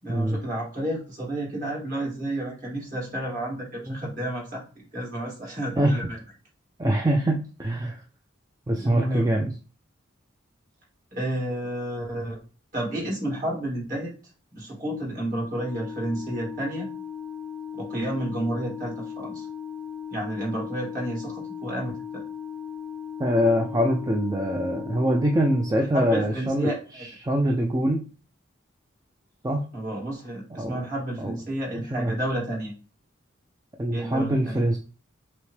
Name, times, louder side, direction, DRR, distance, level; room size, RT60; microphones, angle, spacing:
voice 1, 0.0-6.2 8.7-9.3 11.1-12.4 12.7-14.1 14.5-16.9 17.7-19.5 20.1-22.2 25.9-27.1 29.7-32.7 33.9-34.6, right 1 dB, 40° right, -3 dB, 2.2 m, -31 dB
voice 2, 6.8-8.0 8.7-9.5 23.2-26.7 27.0-28.0 29.4-29.6 30.6-30.8 31.2-31.3 31.7-32.1 33.8-34.8, right 1 dB, 15° right, 2 dB, 0.3 m, -24 dB
Organ, 15.4-26.3, left 8 dB, 30° left, 0.6 m, -37 dB
5.8 x 2.1 x 3.2 m, 0.37 s
head